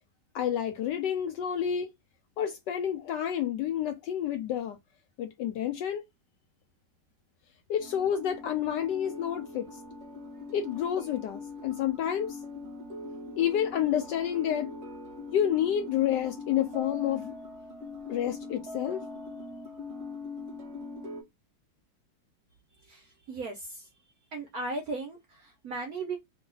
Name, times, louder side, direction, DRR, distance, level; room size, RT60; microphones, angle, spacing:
voice 1, 0.3-1.9 2.4-4.8 5.2-6.0 7.7-9.7 10.5-12.4 13.4-14.7 15.3-17.4 18.1-19.0, left 10 dB, 75° left, 1.0 m, -29 dB
sound 1, 7.8-21.2, left 2 dB, 45° right, 1.0 m, -42 dB
voice 2, 22.8-23.9 24.3-26.2, right 3 dB, 70° right, 0.9 m, -37 dB
3.2 x 2.3 x 3.6 m
omnidirectional pair, 2.2 m